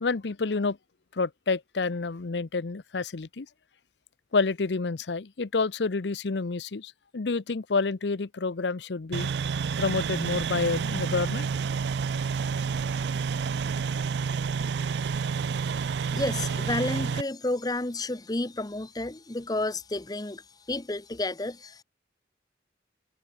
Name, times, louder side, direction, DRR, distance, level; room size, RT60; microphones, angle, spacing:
voice 1, 0.0-0.8 1.1-3.5 4.3-9.3 9.8-11.5 16.1-16.2, left 4 dB, 75° left, 0.7 m, -29 dB
sound 1, 9.1-17.2, right 5 dB, 70° right, 0.4 m, -29 dB
voice 2, 16.1-20.4 20.7-21.8, left 2 dB, 20° left, 0.8 m, -31 dB
head